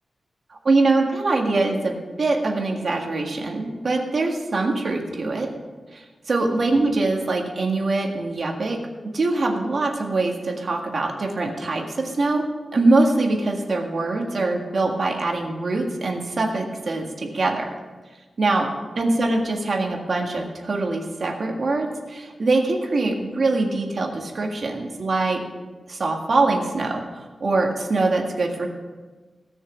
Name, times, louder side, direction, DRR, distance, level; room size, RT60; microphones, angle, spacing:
voice 1, 0.7-5.5 5.9-8.8 9.1-12.4 12.7-17.7 18.4-25.4 25.9-27.0 27.4-28.7, right 2 dB, 45° right, 1 dB, 1.8 m, -23 dB
18.0 x 6.4 x 7.1 m, 1.3 s
wide cardioid pair, 175°, 0 cm